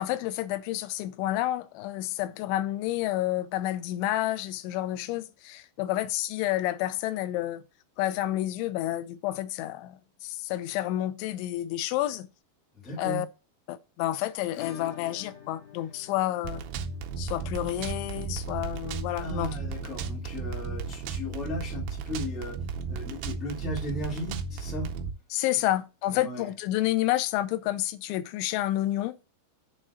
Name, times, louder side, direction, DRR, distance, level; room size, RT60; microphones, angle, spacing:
voice 1, 0.0-7.6 8.0-12.3 13.0-13.3 13.7-16.6 17.2-19.6 25.3-29.2, left 14 dB, 90° left, 2.9 m, -29 dB
voice 2, 12.7-13.2 19.2-22.6 22.9-24.9 25.6-25.7 26.1-26.5, left 1 dB, ahead, 1.2 m, -36 dB
Acoustic guitar / Strum, 14.5-23.1 23.4-23.5 23.8-23.9 24.3-24.4 26.4-26.5 27.6-27.7, left 9 dB, 70° left, 2.3 m, -51 dB
sound 1, 16.4-25.1, right 5 dB, 85° right, 2.1 m, -34 dB
7.6 x 3.2 x 6.2 m
omnidirectional pair, 5.2 m